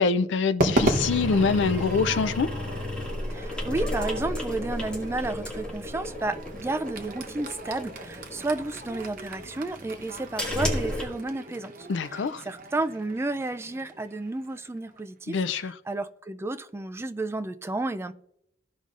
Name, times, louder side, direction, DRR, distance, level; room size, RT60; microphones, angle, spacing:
voice 1, 0.0-2.5 11.9-12.4 15.3-15.7, left 4 dB, 75° left, 0.4 m, -25 dB
Crowd / Fireworks, 0.6-15.0, right 1 dB, 50° right, 0.9 m, -35 dB
sound 1, 0.8-11.0, left 1 dB, 5° left, 2.1 m, -34 dB
voice 2, 3.3-18.1, right 2 dB, 15° right, 0.3 m, -32 dB
15.0 x 5.3 x 2.5 m
head